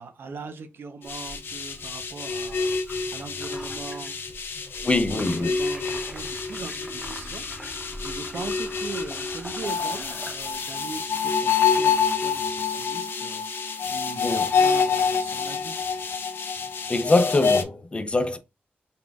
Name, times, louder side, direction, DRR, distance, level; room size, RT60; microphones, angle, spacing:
voice 1, 0.0-4.2 4.7-7.5 7.7-15.8, right 4 dB, 75° right, 0.8 m, -40 dB
sound 1, 1.1-17.6, left 5 dB, 75° left, 0.7 m, -27 dB
sound 2, 1.1-10.8, equal, 5° right, 0.9 m, -42 dB
voice 2, 4.8-5.5 14.2-14.5 16.9-18.4, left 2 dB, 30° left, 0.6 m, -23 dB
4.0 x 3.8 x 2.3 m
wide cardioid pair, 115°, 4 cm